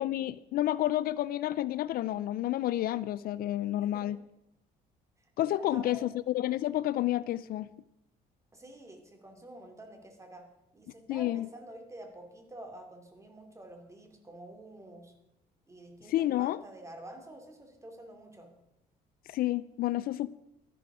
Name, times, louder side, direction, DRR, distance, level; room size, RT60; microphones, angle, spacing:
voice 1, 0.0-4.2 5.4-7.7 11.1-11.5 16.1-16.6 19.3-20.3, left 14 dB, 60° left, 17 dB, 0.4 m, -30 dB
voice 2, 3.8-4.2 5.4-6.1 8.5-10.5 10.7-15.1 15.7-18.5, right 1 dB, 15° right, 4 dB, 2.6 m, -48 dB
13.0 x 11.5 x 4.9 m, 0.89 s
cardioid pair, 110°, 17 cm